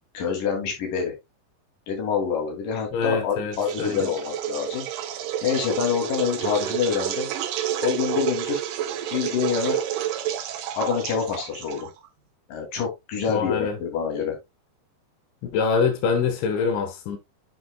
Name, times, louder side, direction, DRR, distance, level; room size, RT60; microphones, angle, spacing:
voice 1, 0.1-1.1 1.9-4.9 5.4-7.3 7.8-8.6 9.1-9.8 10.7-11.9 12.5-14.4, left 7 dB, 50° left, 4.1 m, -26 dB
voice 2, 2.9-4.1 13.3-13.8 15.4-17.2, left 5 dB, 90° left, 3.7 m, -25 dB
sound 1, 3.5-12.1, right 11 dB, 90° right, 1.8 m, -30 dB
7.9 x 7.8 x 2.3 m
omnidirectional pair, 5.1 m